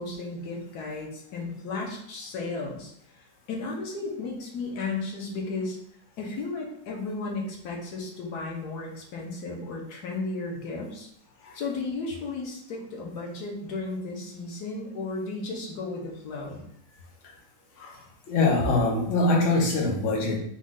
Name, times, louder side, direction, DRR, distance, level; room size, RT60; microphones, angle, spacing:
voice 1, 0.0-2.9 3.5-5.8 6.2-11.1 11.5-16.6, left 3 dB, 85° left, -1 dB, 1.5 m, -34 dB
voice 2, 18.3-20.4, left 2 dB, 55° left, -1 dB, 1.1 m, -23 dB
4.0 x 3.1 x 3.7 m, 0.72 s
omnidirectional pair, 1.7 m